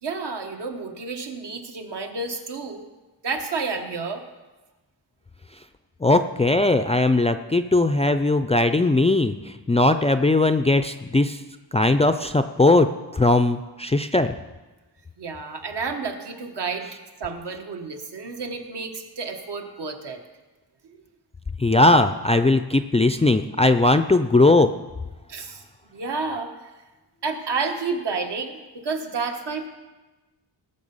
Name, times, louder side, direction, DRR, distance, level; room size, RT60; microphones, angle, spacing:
voice 1, 0.0-2.8 3.2-4.2 15.2-16.9 17.2-20.2 20.9-21.0 25.3-25.6 25.9-26.7 27.2-29.7, right 4 dB, 70° right, 4 dB, 1.5 m, -30 dB
voice 2, 6.0-11.4 11.7-14.4 21.6-24.7, left 2 dB, 15° left, 8 dB, 0.4 m, -19 dB
19.0 x 6.8 x 5.5 m, 1.2 s
wide cardioid pair, 120°, 43 cm